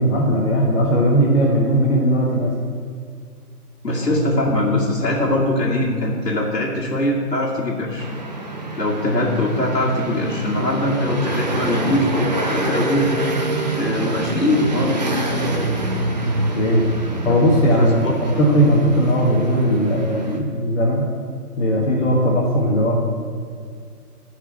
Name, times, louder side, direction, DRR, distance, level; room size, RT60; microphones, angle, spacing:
voice 1, 0.0-2.5 16.5-16.8 17.2-21.0 21.6-22.9, equal, 45° left, -4 dB, 1.5 m, -18 dB
voice 2, 3.8-8.1 8.8-13.1 13.8-15.1 17.3-17.4 17.8-18.1, left 1 dB, 90° left, -5 dB, 2.0 m, -21 dB
sound 1, 8.0-20.4, right 1 dB, 25° right, 0.7 m, -25 dB
14.5 x 4.8 x 4.5 m, 2.1 s
hypercardioid pair, 160°, 47 cm